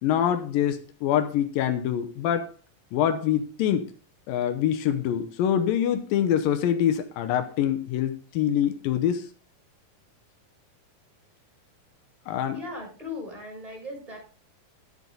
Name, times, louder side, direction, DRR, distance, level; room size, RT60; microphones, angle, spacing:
voice 1, 0.0-2.5 2.9-3.9 4.3-9.3 12.3-12.6, left 10 dB, 90° left, 8 dB, 2.7 m, -25 dB
voice 2, 12.5-14.2, left 2 dB, 10° right, -1 dB, 6.9 m, -38 dB
12.0 x 9.7 x 3.9 m, 0.35 s
omnidirectional pair, 4.0 m